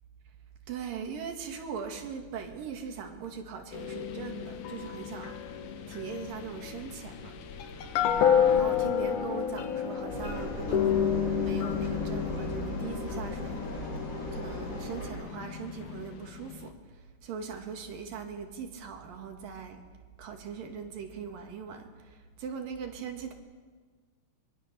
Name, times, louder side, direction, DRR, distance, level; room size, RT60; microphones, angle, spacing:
voice 1, 0.7-5.4 5.9-7.3 8.5-11.1 11.4-13.9 14.3-16.7 17.2-19.8 20.2-23.3, right 6 dB, 80° right, 4 dB, 3.7 m, -40 dB
sound 1, 3.7-16.7, left 8 dB, 70° left, 2.6 m, -31 dB
Engine, 10.1-15.1, equal, 20° left, 7.1 m, -37 dB
23.5 x 23.0 x 6.8 m, 1.5 s
omnidirectional pair, 3.9 m